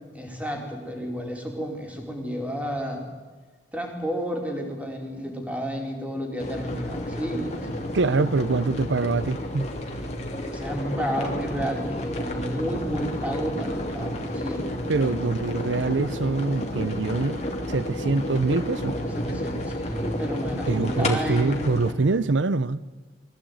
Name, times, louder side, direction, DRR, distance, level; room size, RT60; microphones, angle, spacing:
voice 1, 0.1-3.1 3.7-7.7 10.4-15.1 18.8-21.6, equal, 10° right, 4.3 m, -31 dB
sound 1, 6.4-21.9, left 1 dB, 35° left, 3.1 m, -31 dB
voice 2, 7.9-9.7 14.9-17.4 17.7-19.0 20.7-22.8, right 3 dB, 90° right, 0.7 m, -24 dB
23.0 x 16.5 x 9.3 m
head